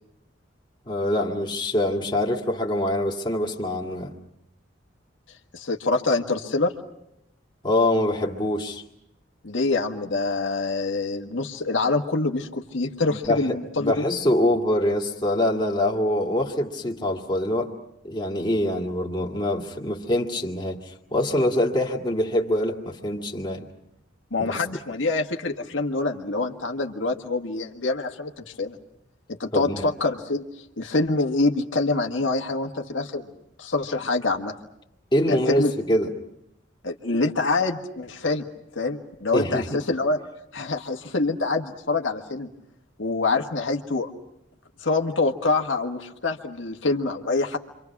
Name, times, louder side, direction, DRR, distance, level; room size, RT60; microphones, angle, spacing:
voice 1, 0.9-4.2 7.6-8.8 13.1-17.7 18.0-23.7 24.4-24.5 29.5-29.9 35.1-36.1 39.3-39.8, left 1 dB, 25° left, 2.2 m, -24 dB
voice 2, 5.5-6.7 9.4-14.0 24.3-28.8 29.3-30.4 30.8-33.3 33.6-34.5 35.3-35.7 36.8-38.5 38.8-40.2 40.5-42.5 43.0-44.1 44.8-47.6, left 3 dB, 90° left, 1.7 m, -25 dB
29.0 x 25.5 x 6.0 m
head